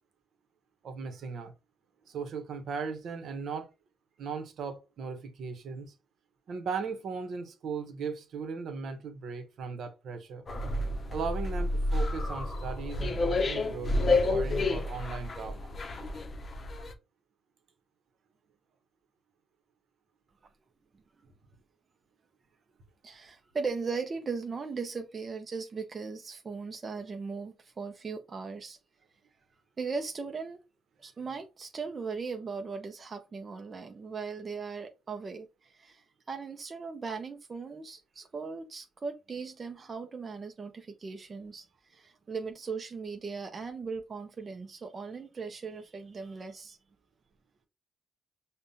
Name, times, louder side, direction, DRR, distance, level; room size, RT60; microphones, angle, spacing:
voice 1, 0.8-1.5 2.1-3.7 4.2-5.9 6.5-10.4 11.1-15.7, right 5 dB, 65° right, 0.8 m, -37 dB
sound 1, 10.5-16.9, left 2 dB, 40° left, 0.6 m, -30 dB
voice 2, 23.0-28.8 29.8-30.6 31.0-46.8, right 4 dB, 35° right, 0.4 m, -38 dB
5.3 x 2.1 x 2.6 m
cardioid pair, 90°, 0 cm